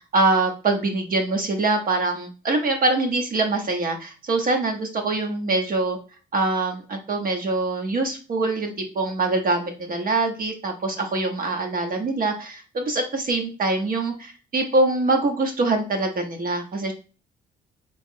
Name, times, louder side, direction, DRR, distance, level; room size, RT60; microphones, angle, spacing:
voice 1, 0.1-6.0 6.3-16.9, right 2 dB, 45° right, 3 dB, 0.7 m, -24 dB
3.0 x 2.9 x 3.6 m, 0.35 s
cardioid pair, 90°, 20 cm